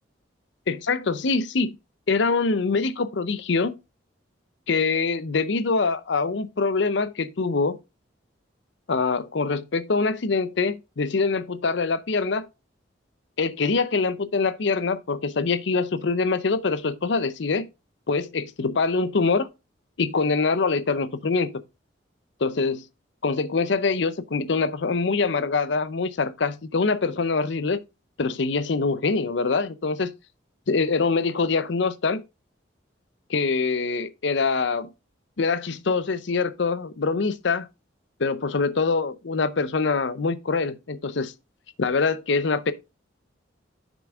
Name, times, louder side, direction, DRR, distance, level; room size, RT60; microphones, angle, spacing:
voice 1, 0.7-1.7 2.1-3.7 4.7-7.8 8.9-12.5 13.4-17.7 18.1-19.5 20.0-21.5 22.4-22.9 23.2-27.8 28.2-30.1 30.7-32.2 33.3-34.9 35.4-37.7 38.2-41.3 41.8-42.7, left 4 dB, 65° left, 0.6 m, -24 dB
6.8 x 6.1 x 3.4 m
head